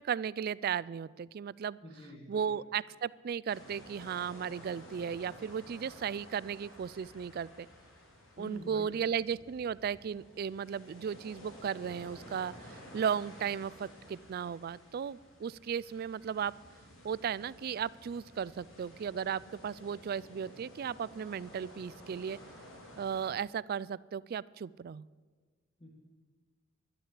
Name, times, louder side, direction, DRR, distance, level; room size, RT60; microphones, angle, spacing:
voice 1, 0.0-1.8 2.3-7.7 8.4-16.5 17.0-22.4 23.0-25.1, right 7 dB, 50° right, 21 dB, 0.3 m, -35 dB
voice 2, 1.8-2.5 8.4-8.9 25.8-25.9, left 1 dB, 25° left, -1 dB, 1.6 m, -47 dB
sound 1, 3.5-23.3, equal, 90° left, 3.4 m, -53 dB
12.0 x 10.5 x 8.2 m, 1.4 s
head